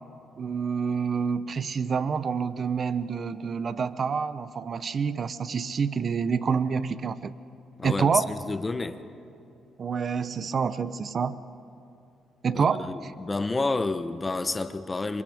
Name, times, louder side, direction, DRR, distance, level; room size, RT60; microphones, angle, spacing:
voice 1, 0.4-7.3 7.8-8.3 9.8-11.4 12.4-13.1, right 6 dB, 45° right, 0.7 m, -27 dB
voice 2, 7.8-9.0 12.6-15.2, left 3 dB, 25° left, 0.9 m, -29 dB
28.5 x 27.0 x 3.6 m
cardioid pair, 90°, 0 cm